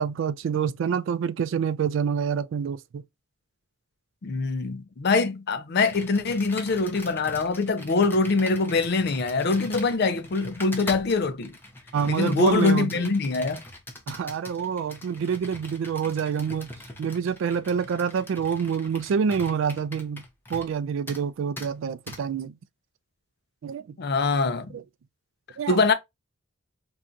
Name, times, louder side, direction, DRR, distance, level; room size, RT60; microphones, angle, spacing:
voice 1, 0.0-3.0 11.9-13.1 14.1-16.7 17.0-20.2 20.5-22.6 23.6-24.0 24.7-24.8 25.6-25.9, right 7 dB, 80° right, 0.3 m, -27 dB
voice 2, 4.2-11.5 12.1-13.6 24.0-24.7 25.7-25.9, left 3 dB, 60° left, 0.5 m, -24 dB
Computer keyboard, 5.8-20.8 21.1-21.2 21.6-21.7 22.1-22.2, left 1 dB, 10° left, 0.6 m, -42 dB
2.6 x 2.3 x 3.6 m
head